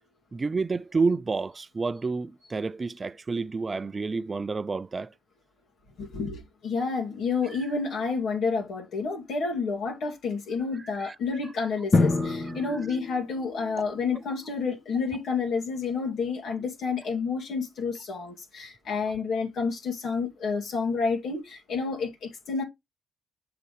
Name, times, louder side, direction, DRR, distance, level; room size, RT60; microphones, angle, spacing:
voice 1, 0.3-5.1 10.8-11.2 12.1-12.6, right 4 dB, 30° right, 0.4 m, -30 dB
voice 2, 6.0-22.6, left 4 dB, 70° left, 2.3 m, -30 dB
Drum, 11.9-13.9, left 3 dB, 40° left, 1.6 m, -26 dB
7.5 x 4.9 x 3.3 m
cardioid pair, 90°, 0 cm